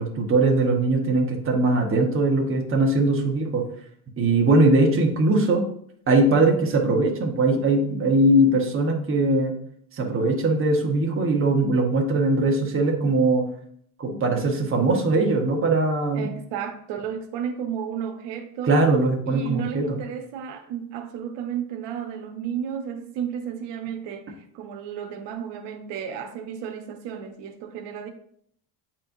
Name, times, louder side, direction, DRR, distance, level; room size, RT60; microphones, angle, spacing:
voice 1, 0.0-3.6 4.2-5.6 6.1-9.5 9.9-13.4 14.0-16.3 18.7-20.0, right 2 dB, 30° right, 1.3 m, -21 dB
voice 2, 16.1-18.8 19.3-28.1, right 8 dB, 85° right, 0.9 m, -33 dB
8.3 x 4.4 x 2.7 m
cardioid pair, 125°, 42 cm